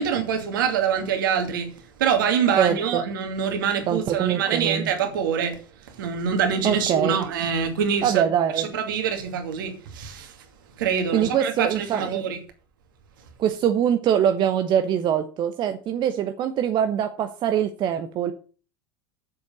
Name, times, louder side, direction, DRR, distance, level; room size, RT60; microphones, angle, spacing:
voice 1, 0.0-1.7 2.0-5.6 5.9-8.3 8.6-10.3 10.8-12.4, right 7 dB, 70° right, 2.4 m, -25 dB
voice 2, 2.6-3.0 3.9-4.9 6.6-7.2 8.0-8.7 11.1-12.2 13.4-18.3, right 9 dB, 40° right, 1.0 m, -23 dB
7.7 x 7.1 x 7.7 m
figure-of-eight pair, 75°, 12 cm